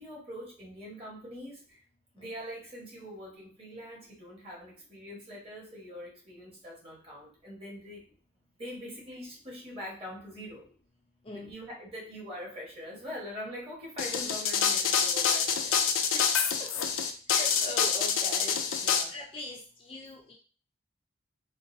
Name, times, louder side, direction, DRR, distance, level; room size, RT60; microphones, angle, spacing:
voice 1, 0.0-1.8 2.1-8.0 8.6-10.7 11.3-15.8 18.8-19.1, equal, 30° right, -4 dB, 1.3 m, -43 dB
sound 1, 14.0-19.0, left 7 dB, 80° left, 0.4 m, -26 dB
voice 2, 17.3-18.6 19.1-20.3, left 2 dB, 25° left, -1 dB, 0.4 m, -41 dB
3.8 x 2.2 x 2.7 m, 0.40 s
head